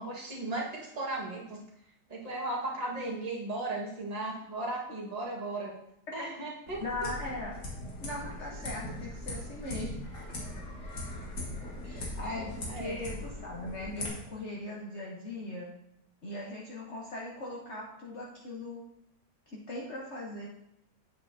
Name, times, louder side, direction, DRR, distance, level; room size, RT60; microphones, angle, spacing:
voice 1, 0.0-1.6 2.1-5.7 6.1-6.8 12.6-12.9, right 2 dB, 25° right, -4 dB, 1.6 m, -36 dB
sound 1, 6.7-14.1, left 1 dB, 85° left, 2.4 m, -40 dB
voice 2, 6.8-7.5 8.0-9.9 11.8-15.7 16.2-18.8 19.5-20.5, left 2 dB, 45° left, -4 dB, 1.2 m, -39 dB
7.9 x 7.5 x 2.7 m, 0.77 s
omnidirectional pair, 1.8 m